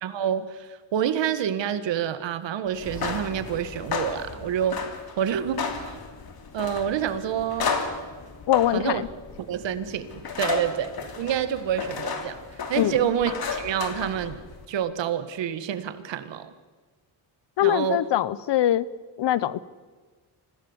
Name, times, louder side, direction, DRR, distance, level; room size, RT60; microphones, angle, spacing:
voice 1, 0.0-4.8 5.2-6.0 6.5-7.8 8.7-9.0 9.4-12.4 12.7-14.4 14.7-16.5 17.6-18.0, right 9 dB, 80° right, 12 dB, 1.7 m, -28 dB
sound 1, 2.8-14.7, left 5 dB, 55° left, 2.9 m, -33 dB
voice 2, 8.5-9.1 12.8-13.1 17.6-18.9 19.2-19.6, left 12 dB, 70° left, 19 dB, 1.0 m, -23 dB
25.5 x 16.0 x 7.3 m, 1.4 s
cardioid pair, 105°, 44 cm